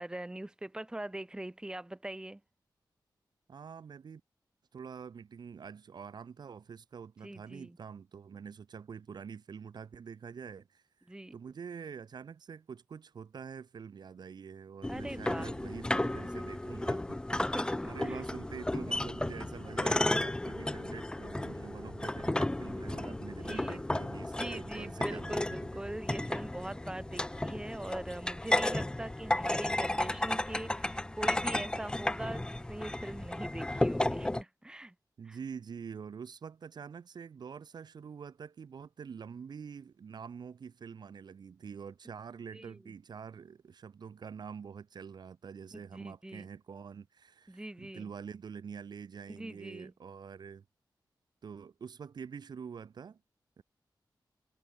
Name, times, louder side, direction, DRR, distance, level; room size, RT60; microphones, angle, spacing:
voice 1, 0.0-2.4 7.2-7.8 11.1-11.4 14.9-15.5 17.4-18.3 19.9-20.0 23.0-23.8 24.4-34.9 35.3-35.4 42.5-42.8 45.7-46.5 47.5-48.1 49.4-49.9, right 1 dB, 10° right, 3.7 m, -42 dB
voice 2, 3.5-4.2 4.7-17.2 17.8-25.5 35.2-50.6 51.4-53.2 53.6-53.7, right 6 dB, 70° right, 1.4 m, -46 dB
sound 1, 14.8-34.4, left 1 dB, 10° left, 0.9 m, -33 dB
wide cardioid pair, 180°, 8 cm